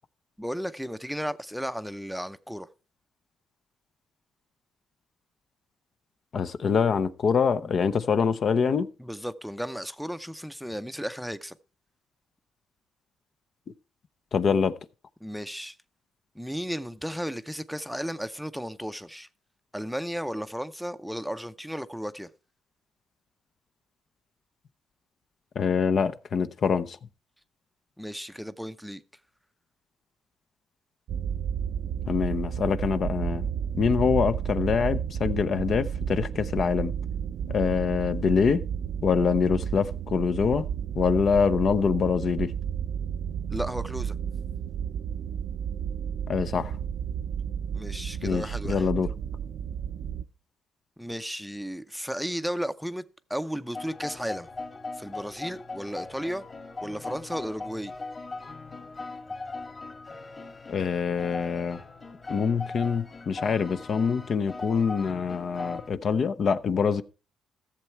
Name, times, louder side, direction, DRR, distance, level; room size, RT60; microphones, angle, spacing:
voice 1, 0.4-2.7 7.6-7.8 9.0-11.6 15.2-15.8 16.3-19.3 19.7-22.3 28.0-29.0 43.5-44.2 47.7-48.9 51.0-53.0 53.3-54.5 54.9-56.4 56.8-57.9, equal, ahead, 0.6 m, -34 dB
voice 2, 6.3-8.9 14.3-14.8 25.6-27.0 32.1-36.9 37.5-38.6 39.0-40.7 40.9-42.5 46.3-46.7 48.2-49.1 60.7-61.8 62.3-67.0, left 6 dB, 50° left, 0.6 m, -25 dB
sound 1, 31.1-50.2, right 8 dB, 75° right, 0.5 m, -32 dB
sound 2, 53.7-65.9, left 3 dB, 35° left, 2.3 m, -39 dB
14.5 x 7.2 x 4.5 m
cardioid pair, 90°, 0 cm